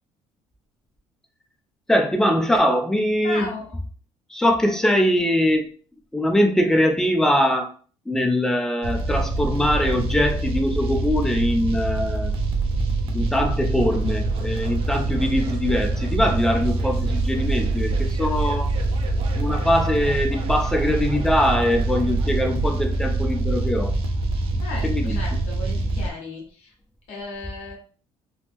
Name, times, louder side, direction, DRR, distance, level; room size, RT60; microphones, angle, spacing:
voice 1, 1.9-3.5 4.3-5.7 6.1-7.7 8.1-12.3 13.1-18.7 19.4-23.9 24.8-25.2, left 1 dB, 5° left, 4 dB, 0.3 m, -22 dB
voice 2, 3.2-3.8 24.6-26.7 27.1-27.8, left 2 dB, 65° left, 0 dB, 1.1 m, -35 dB
sound 1, 8.8-26.1, right 2 dB, 45° right, 0.5 m, -24 dB
2.9 x 2.0 x 3.3 m, 0.41 s
cardioid pair, 165°, 12 cm